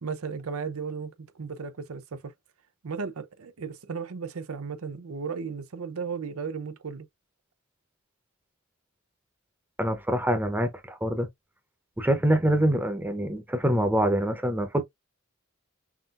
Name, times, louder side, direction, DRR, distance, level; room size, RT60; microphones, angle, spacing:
voice 1, 0.0-2.3 2.8-7.1, right 5 dB, 85° right, 0.6 m, -35 dB
voice 2, 9.8-11.3 12.0-14.8, right 1 dB, 10° right, 0.8 m, -25 dB
5.8 x 2.6 x 2.5 m
head